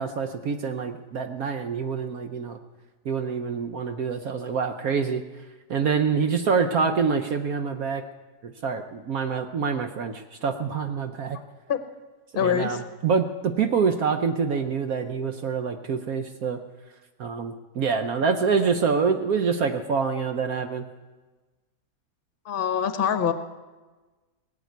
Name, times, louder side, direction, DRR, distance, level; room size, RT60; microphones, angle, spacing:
voice 1, 0.0-2.6 3.0-5.2 5.7-8.0 8.4-11.4 12.3-16.6 17.2-20.8, right 5 dB, 65° right, 7 dB, 1.2 m, -26 dB
voice 2, 12.3-12.8 22.4-23.3, left 8 dB, 40° left, 9 dB, 1.0 m, -24 dB
19.5 x 7.5 x 9.3 m, 1.3 s
omnidirectional pair, 1.8 m